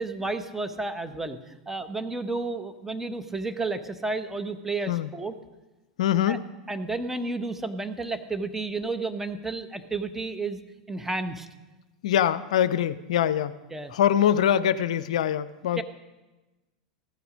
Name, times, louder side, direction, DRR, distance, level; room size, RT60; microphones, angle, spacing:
voice 1, 0.0-5.3 6.3-6.4 6.7-10.6 10.9-11.5 13.7-13.9 15.8-15.9, right 3 dB, 10° right, 8 dB, 1.1 m, -31 dB
voice 2, 6.0-6.4 12.0-13.6 13.9-15.8, left 10 dB, 70° left, 15 dB, 0.5 m, -23 dB
15.0 x 11.0 x 5.1 m, 1.1 s
hypercardioid pair, 95°, 4 cm